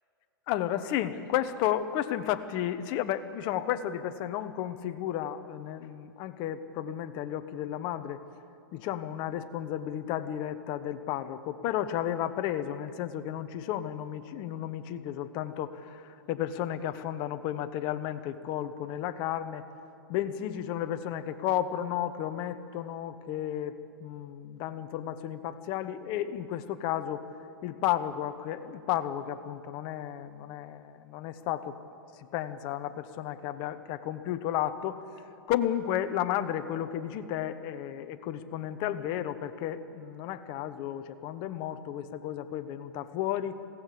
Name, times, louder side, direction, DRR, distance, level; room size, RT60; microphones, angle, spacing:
voice 1, 0.5-8.2 8.7-19.6 20.1-27.2 27.6-31.8 32.3-35.0 35.5-43.6, left 11 dB, 35° left, 10 dB, 1.0 m, -33 dB
21.0 x 17.0 x 8.4 m, 2.9 s
hypercardioid pair, 145°, 13 cm